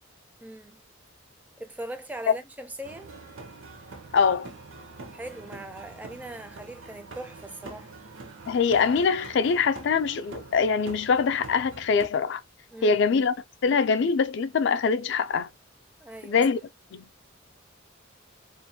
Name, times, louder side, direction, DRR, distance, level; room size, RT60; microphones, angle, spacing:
voice 1, 0.4-0.8 1.6-3.1 5.1-7.9 12.7-13.0 16.0-16.5, right 1 dB, 10° right, 0.4 m, -40 dB
sound 1, 2.8-12.1, right 3 dB, 80° right, 0.7 m, -44 dB
voice 2, 4.1-4.5 8.5-12.4 12.8-13.3 13.6-15.5 16.2-16.6 16.9-17.1, left 5 dB, 60° left, 0.4 m, -23 dB
2.5 x 2.2 x 2.6 m
head